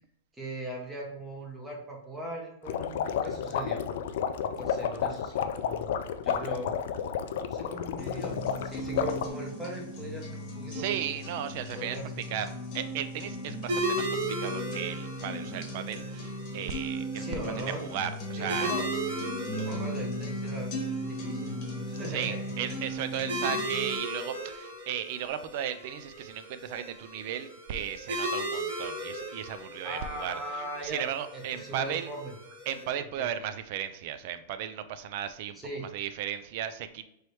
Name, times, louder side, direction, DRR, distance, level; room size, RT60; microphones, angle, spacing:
voice 1, 0.4-3.8 4.4-5.9 6.2-6.7 7.4-11.0 11.7-12.1 17.1-17.8 18.4-18.9 19.6-21.5 21.9-22.4 29.8-32.3 32.8-33.3 35.5-35.9, right 1 dB, 5° right, -1 dB, 0.8 m, -39 dB
sound 1, 2.7-9.3, left 8 dB, 60° left, 0.3 m, -31 dB
sound 2, 8.0-24.0, equal, 30° left, 1.1 m, -37 dB
voice 2, 10.7-12.0 12.3-17.3 17.6-18.7 22.1-32.1 32.7-35.6 35.9-37.0, right 9 dB, 45° right, 11 dB, 0.3 m, -35 dB
sound 3, 13.7-32.8, right 1 dB, 70° right, 1.6 m, -37 dB
4.5 x 3.1 x 3.2 m, 0.79 s
supercardioid pair, 170°, 0 cm